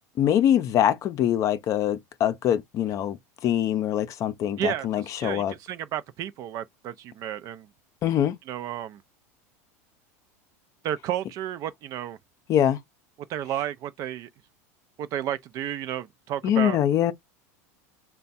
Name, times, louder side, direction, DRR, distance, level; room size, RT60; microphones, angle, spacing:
voice 1, 0.2-5.5 8.0-8.4 12.5-12.8 16.4-17.1, left 10 dB, 40° left, 0.6 m, -23 dB
voice 2, 4.6-7.7 8.5-9.0 10.8-12.2 13.3-14.3 15.0-16.8, right 11 dB, 45° right, 0.5 m, -32 dB
3.4 x 2.2 x 4.1 m
supercardioid pair, 120°, 8 cm